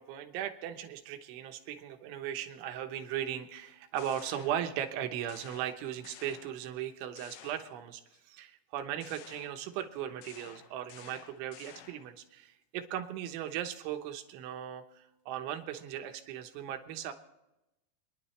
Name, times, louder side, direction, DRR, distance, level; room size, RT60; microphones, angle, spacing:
voice 1, 0.0-8.0 8.3-17.1, right 10 dB, 80° right, 7 dB, 3.3 m, -38 dB
sound 1, 3.7-5.0 5.3-6.8 7.2-8.2 9.0-12.2, left 11 dB, 80° left, 2.4 m, -53 dB
28.5 x 10.5 x 3.2 m, 0.94 s
omnidirectional pair, 5.5 m